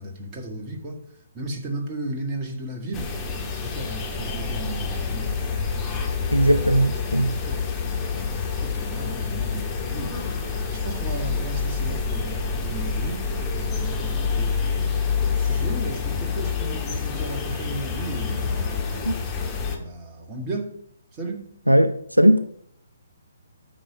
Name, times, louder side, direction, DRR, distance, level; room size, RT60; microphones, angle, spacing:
voice 1, 0.0-3.1 3.6-5.6 6.2-6.4 7.3-8.1 8.5-13.3 13.6-15.0 15.3-18.8 19.6-20.7 21.1-21.5, right 1 dB, 25° right, 2.0 m, -35 dB
sound 1, 2.9-19.8, left 5 dB, 15° left, 1.6 m, -27 dB
voice 2, 6.3-7.4 19.1-19.2 21.7-22.5, right 1 dB, 85° right, 0.5 m, -19 dB
10.0 x 6.4 x 5.2 m
figure-of-eight pair, 130°, 0 cm